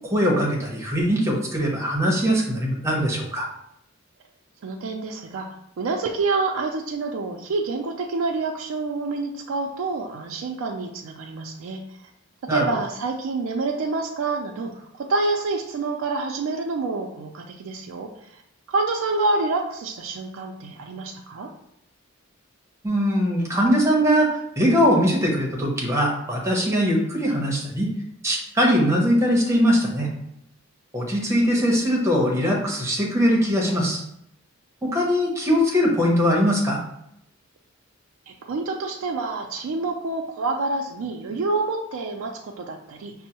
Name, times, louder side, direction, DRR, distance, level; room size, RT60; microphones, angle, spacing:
voice 1, 0.0-3.5 12.5-12.7 22.8-24.3 24.6-27.9 28.2-30.1 30.9-34.0 34.8-36.8, equal, 15° right, -2 dB, 0.7 m, -21 dB
voice 2, 4.6-11.8 12.5-18.4 18.7-21.5 38.3-43.1, right 3 dB, 75° right, 1 dB, 0.4 m, -27 dB
5.2 x 2.0 x 2.8 m, 0.75 s
head